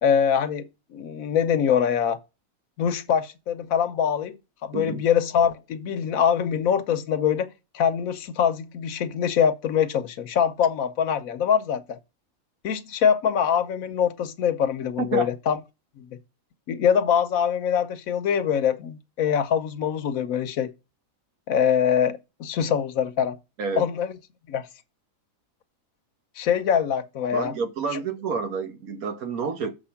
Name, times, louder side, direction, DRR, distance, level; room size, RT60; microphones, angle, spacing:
voice 1, 0.0-2.2 2.8-4.4 4.6-7.5 7.7-12.0 12.6-15.6 16.0-16.2 16.7-20.7 21.5-23.4 23.8-24.1 24.5-24.7 26.4-27.5, left 8 dB, 75° left, 1.2 m, -23 dB
voice 2, 4.7-5.0 15.0-15.3 23.6-23.9 27.3-29.7, right 5 dB, 85° right, 1.5 m, -29 dB
7.0 x 5.0 x 5.8 m
omnidirectional pair, 1.5 m